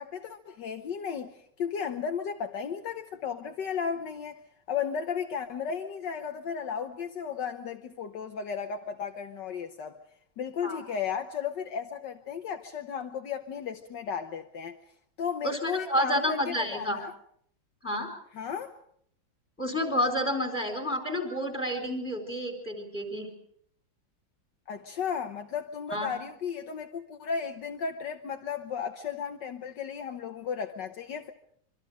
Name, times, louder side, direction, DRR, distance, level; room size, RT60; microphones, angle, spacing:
voice 1, 0.0-4.4 4.7-10.0 10.4-14.8 15.2-17.1 18.4-18.7 24.7-31.3, left 7 dB, 70° left, 1.7 m, -34 dB
voice 2, 15.4-17.0 17.8-18.1 19.6-23.3 25.9-26.2, equal, 5° left, 4.4 m, -30 dB
25.5 x 24.5 x 5.0 m
omnidirectional pair, 2.0 m